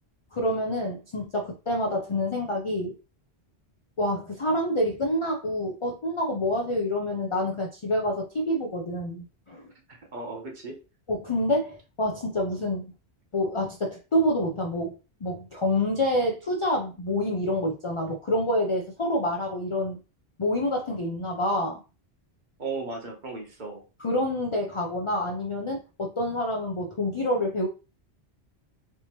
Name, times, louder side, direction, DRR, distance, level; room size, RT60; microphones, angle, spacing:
voice 1, 0.3-3.0 4.0-9.7 11.1-12.9 13.3-14.9 15.2-20.0 20.4-21.8 24.0-27.7, left 1 dB, 45° left, 0.4 m, -27 dB
voice 2, 9.9-10.8 22.6-23.8, right 3 dB, 45° right, 1.0 m, -36 dB
3.4 x 2.8 x 2.9 m
omnidirectional pair, 1.1 m